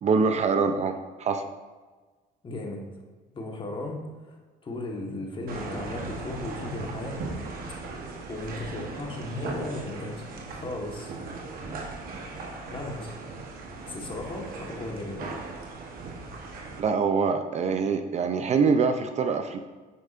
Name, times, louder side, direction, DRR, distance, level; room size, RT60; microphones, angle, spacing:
voice 1, 0.0-0.9 1.2-1.4 16.8-19.6, right 5 dB, 40° right, 7 dB, 0.4 m, -24 dB
voice 2, 2.4-2.8 3.3-4.0 4.6-7.2 8.3-10.2 10.5-11.1 12.7-13.1 13.8-15.3, left 2 dB, 30° left, 1 dB, 1.2 m, -35 dB
sound 1, 5.5-16.8, right 3 dB, 60° right, 1.1 m, -38 dB
8.2 x 5.4 x 2.5 m, 1.3 s
cardioid pair, 110°, 17 cm